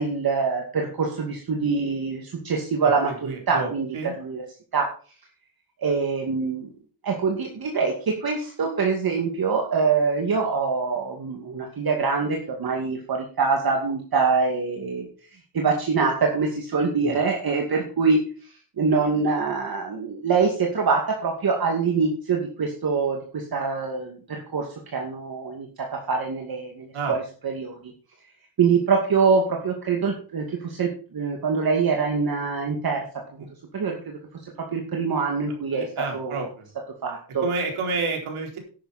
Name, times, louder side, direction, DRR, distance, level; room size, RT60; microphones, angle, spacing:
voice 1, 0.0-3.9 4.2-4.4 4.7-4.9 5.8-6.7 7.0-7.9 8.2-15.1 15.5-18.2 18.8-24.7 24.9-25.7 26.1-27.7 28.6-33.0 33.7-34.2 34.7-35.9 36.1-36.5 37.0-37.4, right 5 dB, 45° right, 1 dB, 2.3 m, -24 dB
voice 2, 3.2-4.1 17.0-17.2 26.9-27.1 33.4-33.5 35.7-36.7 37.4-38.6, right 4 dB, 75° right, 1 dB, 4.4 m, -30 dB
11.5 x 10.0 x 4.3 m, 0.39 s
cardioid pair, 135°, 50 cm